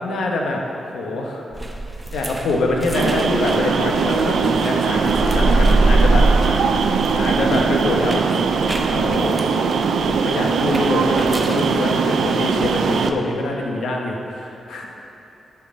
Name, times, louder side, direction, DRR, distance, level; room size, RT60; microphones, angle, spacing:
voice 1, 0.0-0.6 0.9-1.5 2.1-6.6 7.2-8.3 8.8-14.9, left 2 dB, 90° left, 0 dB, 1.0 m, -24 dB
sound 1, 1.5-4.6 4.9-9.1, right 2 dB, 15° left, 1.2 m, -21 dB
sound 2, 1.5-13.1, right 1 dB, 10° right, 0.5 m, -37 dB
sound 3, 2.9-13.1, right 5 dB, 75° right, 0.4 m, -20 dB
6.9 x 4.7 x 6.4 m, 3.0 s
wide cardioid pair, 170°, 0 cm